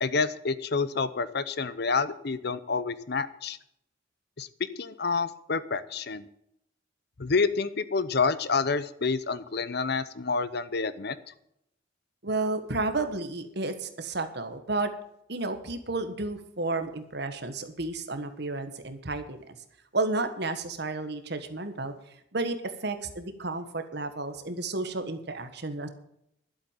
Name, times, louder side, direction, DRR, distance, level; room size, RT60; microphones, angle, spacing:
voice 1, 0.0-3.6 4.4-4.5 4.8-6.2 7.2-11.2, left 4 dB, 55° left, 15 dB, 0.7 m, -28 dB
voice 2, 12.2-14.9 15.3-19.5 19.9-21.9 22.3-22.6 22.8-25.9, right 3 dB, 55° right, 8 dB, 1.5 m, -32 dB
12.0 x 8.0 x 9.1 m, 0.76 s
head